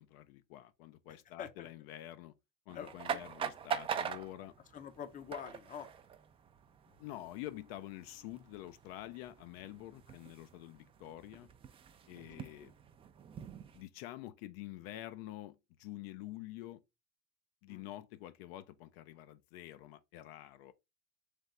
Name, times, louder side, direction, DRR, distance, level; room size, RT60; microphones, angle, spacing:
voice 1, 0.0-2.3 2.7-4.5 7.0-11.5 12.1-12.7 13.7-16.8 17.6-20.7, left 14 dB, 65° left, 0.5 m, -48 dB
sound 1, 2.7-13.8, right 7 dB, 20° right, 0.3 m, -44 dB
voice 2, 4.7-5.9 6.9-7.0 12.4-12.5 17.7-17.9, left 8 dB, 25° left, 0.6 m, -45 dB
3.4 x 3.3 x 3.8 m
supercardioid pair, 115°, 32 cm